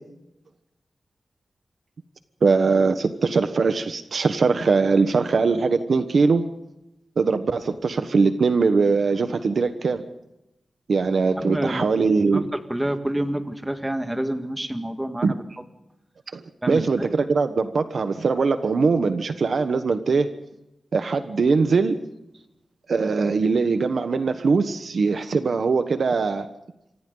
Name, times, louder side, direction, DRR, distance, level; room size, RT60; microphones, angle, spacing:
voice 1, 2.4-6.5 7.2-10.0 10.9-12.4 15.2-15.3 16.3-16.4 16.7-20.3 20.9-22.0 22.9-26.5, right 4 dB, 60° right, 9 dB, 1.2 m, -21 dB
voice 2, 11.4-11.9 12.3-15.3 16.6-17.1, right 1 dB, 10° right, 7 dB, 1.9 m, -28 dB
28.0 x 25.0 x 4.0 m, 0.89 s
wide cardioid pair, 160°, 0 cm